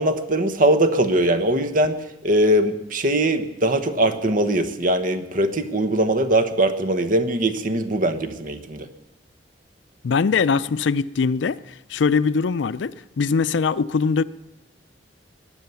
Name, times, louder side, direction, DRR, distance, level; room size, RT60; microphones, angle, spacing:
voice 1, 0.0-2.0 2.2-8.9, right 1 dB, 50° right, 1.1 m, -21 dB
voice 2, 10.0-14.2, left 5 dB, 85° left, 0.4 m, -22 dB
20.5 x 9.1 x 7.0 m
head